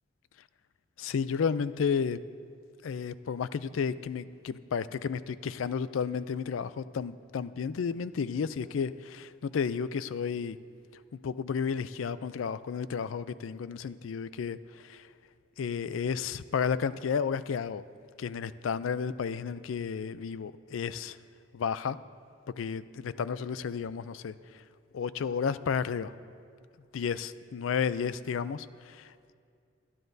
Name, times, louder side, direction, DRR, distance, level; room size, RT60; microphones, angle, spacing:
voice 1, 1.0-2.2 2.8-10.6 11.2-15.0 15.6-17.8 18.2-21.2 21.5-22.0 22.6-24.3 24.9-26.1 26.9-29.3, left 6 dB, 90° left, 15 dB, 0.4 m, -32 dB
26.0 x 9.9 x 2.7 m, 2.2 s
head